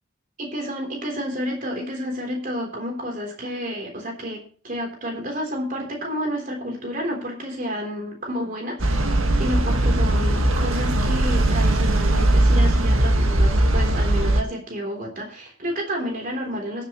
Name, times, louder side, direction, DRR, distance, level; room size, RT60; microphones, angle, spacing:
voice 1, 0.4-8.9 9.4-16.9, equal, 40° right, 1 dB, 3.6 m, -30 dB
sound 1, 8.8-14.4, right 1 dB, 85° right, 1.6 m, -19 dB
21.5 x 7.6 x 3.1 m, 0.43 s
head